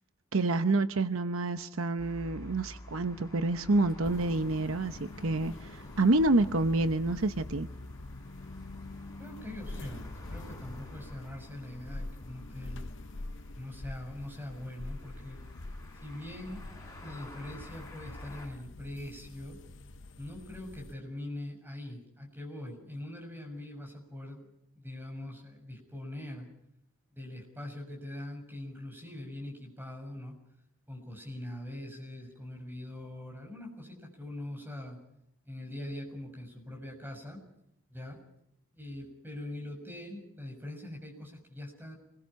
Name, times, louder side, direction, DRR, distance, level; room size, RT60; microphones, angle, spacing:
voice 1, 0.3-7.7, right 2 dB, 70° right, 10 dB, 0.9 m, -28 dB
sound 1, 2.0-18.5, left 1 dB, 15° left, 4.9 m, -51 dB
sound 2, 4.0-20.9, left 2 dB, 55° left, 0.9 m, -45 dB
voice 2, 9.2-12.9 13.5-15.4 16.0-16.6 17.0-19.6 20.1-24.5 24.7-26.5 27.1-30.3 30.9-35.0 35.4-37.4 37.9-38.2 38.7-42.0, left 1 dB, 10° right, 1 dB, 6.7 m, -42 dB
28.5 x 22.0 x 5.8 m, 0.77 s
head